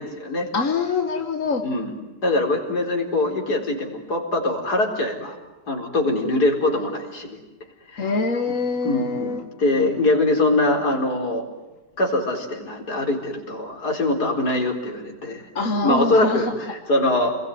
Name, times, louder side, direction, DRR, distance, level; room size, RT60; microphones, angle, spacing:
voice 1, 0.0-0.5 1.6-1.9 2.2-5.4 5.7-7.4 7.9-8.1 8.8-11.5 12.0-15.4 15.8-17.4, left 2 dB, 75° left, 1 dB, 4.9 m, -23 dB
voice 2, 0.5-1.6 8.0-9.4 15.6-16.5, left 4 dB, 55° left, 5 dB, 1.8 m, -24 dB
28.5 x 21.5 x 9.5 m, 1.1 s
omnidirectional pair, 1.7 m